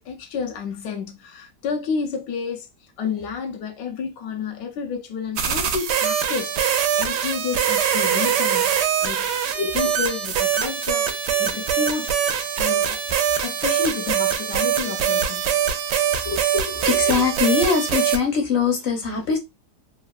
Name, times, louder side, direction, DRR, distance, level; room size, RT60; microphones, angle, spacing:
voice 1, 0.0-13.0 13.4-15.6, left 6 dB, 90° left, 1.2 m, -31 dB
sound 1, 5.4-18.2, right 8 dB, 80° right, 1.2 m, -23 dB
voice 2, 16.3-19.4, left 5 dB, 55° left, 0.7 m, -22 dB
3.3 x 2.3 x 2.3 m
omnidirectional pair, 1.8 m